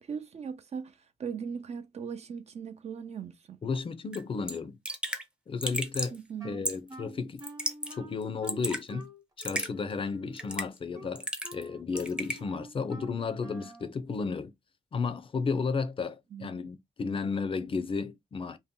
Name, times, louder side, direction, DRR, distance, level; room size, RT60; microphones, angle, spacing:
voice 1, 0.0-3.6 6.1-6.6 16.3-16.7, right 6 dB, 60° right, 0.5 m, -39 dB
voice 2, 3.6-4.8 5.5-6.2 6.4-7.4 7.9-9.1 9.4-14.5 14.9-18.6, left 4 dB, 45° left, 0.4 m, -33 dB
Raindrop / Drip, 4.1-4.2 4.5-4.6 4.8-5.2 5.6-6.2 6.6-6.9 7.4-7.9 8.2-8.8 9.4-9.7 10.4-10.8 11.2-11.7 12.0-12.4, right 1 dB, 5° right, 0.5 m, -33 dB
Wind instrument woodwind instrument, 6.4-13.9, equal, 30° right, 0.8 m, -48 dB
2.7 x 2.1 x 3.5 m
wide cardioid pair, 120°, 13 cm